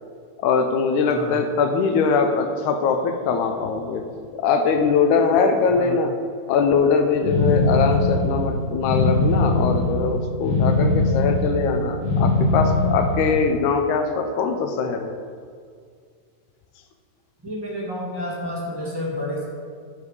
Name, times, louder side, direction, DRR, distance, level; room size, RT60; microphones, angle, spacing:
voice 1, 0.4-4.0 4.3-6.1 6.5-15.1, left 5 dB, 75° left, 6 dB, 2.2 m, -21 dB
voice 2, 1.1-1.4 5.7-5.9 17.4-19.4, left 1 dB, 15° right, -5 dB, 1.0 m, -30 dB
sound 1, 7.2-13.5, left 2 dB, 35° left, 2.0 m, -21 dB
11.5 x 5.4 x 4.9 m, 2.1 s
omnidirectional pair, 3.7 m